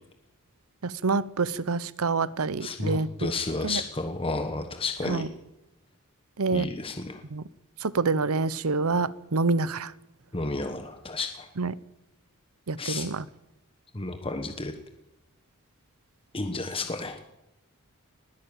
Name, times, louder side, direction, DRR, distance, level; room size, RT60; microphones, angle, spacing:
voice 1, 0.8-3.3 3.6-3.8 5.0-5.3 6.4-6.7 7.3-7.4 7.8-9.9 11.6-11.7 12.7-13.3, right 4 dB, 75° right, 18 dB, 0.8 m, -27 dB
voice 2, 2.6-5.2 6.5-7.2 10.3-11.5 12.8-13.1 13.9-14.7 16.3-17.2, left 3 dB, 25° left, 6 dB, 1.3 m, -32 dB
20.5 x 15.0 x 8.9 m, 0.91 s
head